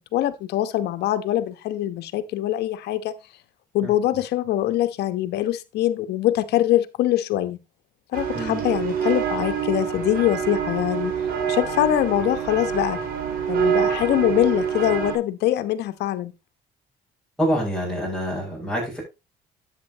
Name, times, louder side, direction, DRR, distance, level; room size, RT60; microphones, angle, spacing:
voice 1, 0.1-3.1 3.7-7.6 8.1-11.1 11.5-13.0 13.5-16.3, left 13 dB, 75° left, 1.1 m, -23 dB
sound 1, 8.1-15.2, right 7 dB, 60° right, 3.9 m, -26 dB
voice 2, 17.4-19.0, equal, ahead, 6.6 m, -26 dB
10.5 x 8.3 x 3.0 m
cardioid pair, 110°, 17 cm